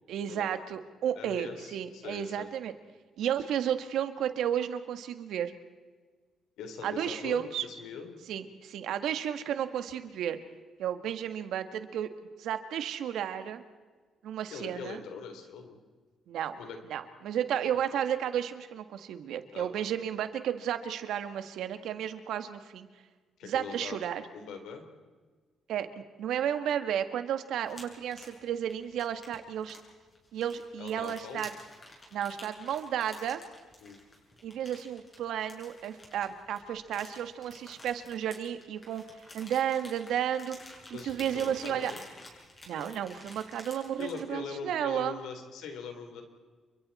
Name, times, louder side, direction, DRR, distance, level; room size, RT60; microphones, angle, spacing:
voice 1, 0.1-2.7 3.2-5.5 6.8-7.6 8.3-10.4 10.8-12.1 12.4-13.6 14.2-15.0 16.3-16.6 16.9-22.9 23.4-24.2 25.7-25.9 26.2-29.8 30.3-31.5 32.1-33.4 34.4-39.0 39.3-40.6 41.0-41.9 42.7-45.2, right 9 dB, 80° right, 9 dB, 1.7 m, -33 dB
voice 2, 1.2-2.5 6.6-8.2 14.5-15.8 16.6-16.8 19.5-19.7 23.4-24.0 24.3-24.8 30.8-31.5 33.8-34.0 40.9-42.0 42.7-42.9 44.0-46.2, left 5 dB, 85° left, 5 dB, 3.8 m, -42 dB
sound 1, 27.7-44.3, left 1 dB, 25° left, 7.6 m, -51 dB
29.5 x 23.5 x 4.3 m, 1.4 s
cardioid pair, 90°, 0 cm